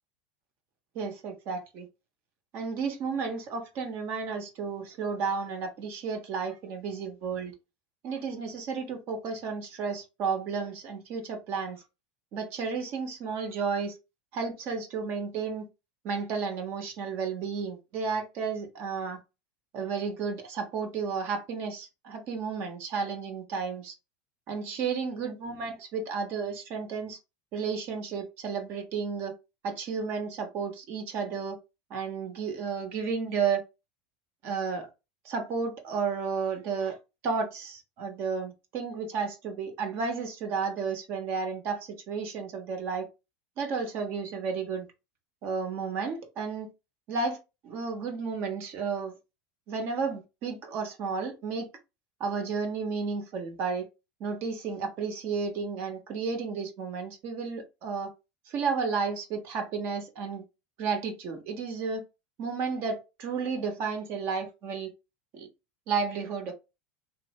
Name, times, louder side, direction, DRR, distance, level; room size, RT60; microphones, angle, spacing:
voice 1, 0.9-1.9 2.5-7.5 8.0-11.8 12.3-14.0 14.3-15.7 16.0-19.2 19.7-23.9 24.5-27.2 27.5-29.3 29.6-31.6 31.9-33.6 34.4-34.9 35.2-37.0 37.2-43.1 43.6-44.9 45.4-46.7 47.1-47.4 47.6-49.1 49.7-51.7 52.2-53.9 54.2-58.1 58.5-60.4 60.8-62.0 62.4-64.9 65.3-65.5 65.9-66.5, right 5 dB, 50° right, 1.0 m, -32 dB
3.1 x 2.7 x 2.8 m
supercardioid pair, 125°, 5 cm